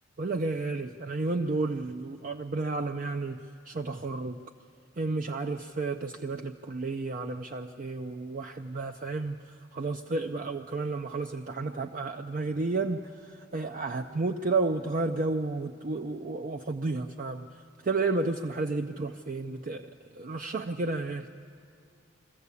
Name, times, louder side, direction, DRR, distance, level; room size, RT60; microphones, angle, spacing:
voice 1, 0.2-3.4 3.7-4.4 5.0-9.4 9.7-17.5 17.8-21.3, right 3 dB, 40° right, 5 dB, 0.5 m, -32 dB
23.0 x 14.5 x 8.3 m, 2.3 s
head